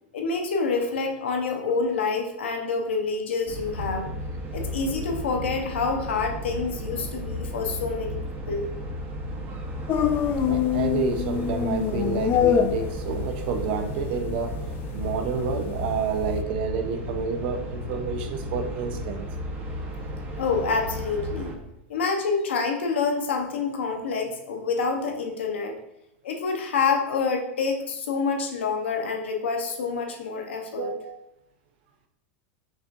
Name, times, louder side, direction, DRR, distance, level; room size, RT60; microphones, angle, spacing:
voice 1, 0.1-4.1 4.5-8.2 8.5-8.7 20.3-21.5 21.9-25.7 26.2-30.9, left 4 dB, 90° left, 3 dB, 0.8 m, -27 dB
sound 1, 3.5-21.5, equal, 35° right, 0.9 m, -34 dB
sound 2, 9.9-16.4, left 8 dB, 35° left, 0.3 m, -26 dB
voice 2, 10.5-14.6 14.9-19.3 30.8-31.2, right 5 dB, 65° right, 6 dB, 0.6 m, -29 dB
5.9 x 2.6 x 2.6 m, 0.85 s
hypercardioid pair, 120°, 6 cm